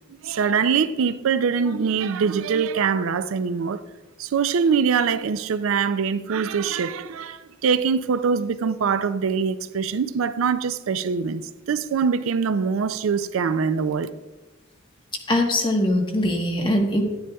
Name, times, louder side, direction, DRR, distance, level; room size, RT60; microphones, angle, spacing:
voice 1, 0.2-3.8 4.2-14.1, right 6 dB, 85° right, 0.4 m, -23 dB
voice 2, 15.3-17.0, left 1 dB, 25° left, 1.2 m, -21 dB
10.5 x 10.0 x 2.3 m
head